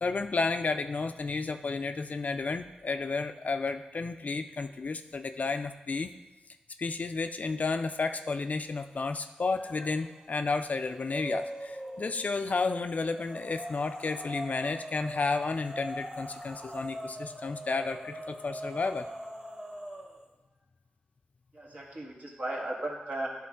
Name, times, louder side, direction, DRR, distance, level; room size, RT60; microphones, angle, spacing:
voice 1, 0.0-6.1 6.8-19.1, left 4 dB, 50° left, 8 dB, 0.4 m, -32 dB
sound 1, 9.5-10.1 10.5-12.3 13.1-20.2, equal, 20° right, 1.1 m, -42 dB
voice 2, 21.5-23.5, right 1 dB, 50° right, -2 dB, 1.7 m, -36 dB
9.7 x 3.8 x 3.6 m, 1.1 s
cardioid pair, 50°, 3 cm